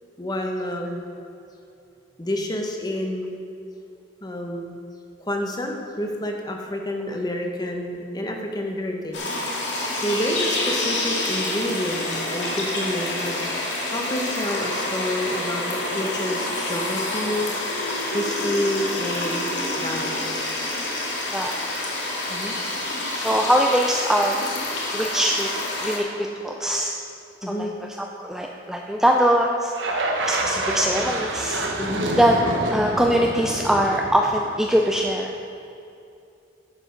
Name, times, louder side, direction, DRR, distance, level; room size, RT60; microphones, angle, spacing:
voice 1, 0.2-1.0 2.2-3.3 4.2-4.8 5.2-9.3 10.0-13.4 13.9-17.5 18.1-20.6 22.3-22.6 27.4-27.7 31.8-32.1, equal, 20° left, 2 dB, 1.1 m, -28 dB
sound 1, 9.1-26.0, left 2 dB, 75° left, 2.1 m, -28 dB
voice 2, 23.1-24.5 24.9-25.5 25.8-26.9 27.5-27.7 28.0-30.0 30.2-31.6 32.2-32.4 32.7-35.3, equal, 5° right, 0 dB, 0.4 m, -22 dB
sound 2, 29.7-35.1, right 1 dB, 80° right, 1.2 m, -28 dB
10.5 x 7.5 x 5.2 m, 2.7 s
head